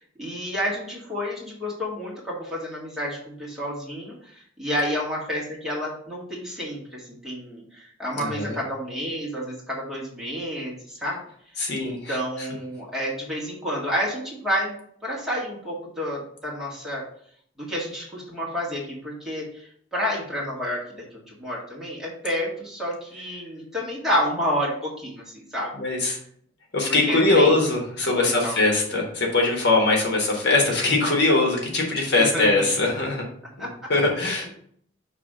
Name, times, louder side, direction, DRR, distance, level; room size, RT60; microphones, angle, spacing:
voice 1, 0.2-11.2 11.9-14.7 15.0-17.0 17.6-20.8 21.1-25.7 26.9-27.6 28.0-28.6 28.9-29.0 32.2-32.7 33.6-33.7, equal, ahead, -6 dB, 1.8 m, -30 dB
voice 2, 8.1-8.5 11.6-12.5 25.7-26.2 26.7-33.2 33.6-34.5, left 2 dB, 60° left, 0 dB, 1.4 m, -22 dB
6.0 x 3.2 x 5.0 m, 0.63 s
head